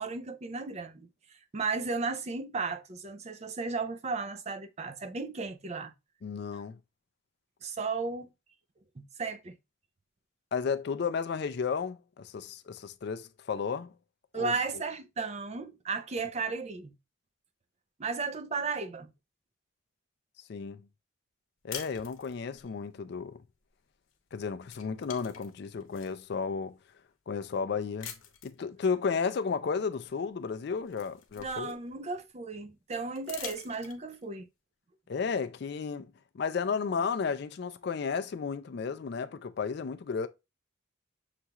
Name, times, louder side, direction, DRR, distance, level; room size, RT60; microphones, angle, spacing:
voice 1, 0.0-5.9 6.5-6.6 7.6-8.3 9.0-9.5 14.3-16.9 18.0-19.1 31.4-34.5, right 4 dB, 30° right, 0.4 m, -35 dB
voice 2, 6.2-6.8 10.5-13.9 14.3-14.5 20.5-20.9 21.6-23.4 24.3-26.8 27.3-28.1 28.4-31.7 35.1-40.3, left 5 dB, 55° left, 0.3 m, -33 dB
sound 1, 21.7-22.7 24.1-24.3 24.6-26.2 26.9-27.0 28.0-28.6 30.0-30.1 30.5-32.1 33.1-34.2, left 8 dB, 80° left, 0.9 m, -45 dB
6.6 x 2.4 x 2.9 m
head